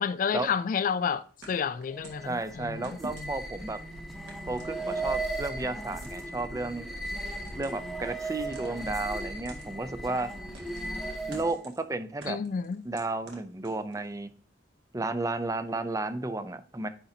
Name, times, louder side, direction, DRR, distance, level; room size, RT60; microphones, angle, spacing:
voice 1, 0.0-3.3 12.3-12.9, left 6 dB, 50° left, 0.3 m, -30 dB
sound 1, 1.4-2.3 2.8-3.5 4.3-5.2 5.9-6.4 7.3-7.9 8.5-9.0 9.4-9.7 10.5-10.9 11.3-11.8 12.2-14.1, right 2 dB, 80° right, 1.9 m, -48 dB
sound 2, 1.9-11.6, right 2 dB, ahead, 0.9 m, -37 dB
voice 2, 2.2-3.8 4.5-6.9 7.6-10.3 11.3-12.4 12.8-14.3 14.9-16.9, right 2 dB, 20° right, 0.5 m, -33 dB
9.9 x 4.0 x 2.8 m
head